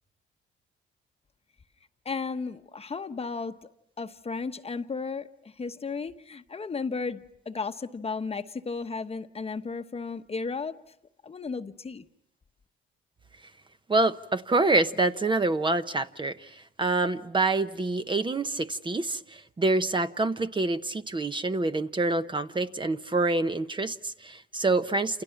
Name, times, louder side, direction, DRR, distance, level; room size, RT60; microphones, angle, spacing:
voice 1, 2.0-3.6 4.0-10.8 11.2-12.0, left 4 dB, 30° left, 1.1 m, -34 dB
voice 2, 13.9-25.2, right 2 dB, 25° right, 0.9 m, -26 dB
29.0 x 28.0 x 5.9 m
cardioid pair, 90°, 20 cm